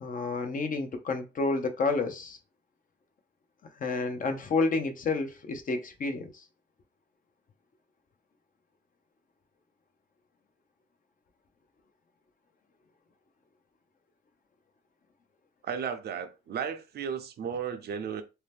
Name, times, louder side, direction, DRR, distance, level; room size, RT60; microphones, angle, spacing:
voice 1, 0.0-2.4 3.8-6.3, left 3 dB, 45° left, 0.6 m, -30 dB
voice 2, 15.6-18.2, right 7 dB, 55° right, 0.6 m, -34 dB
2.8 x 2.0 x 3.3 m
cardioid pair, 90°, 20 cm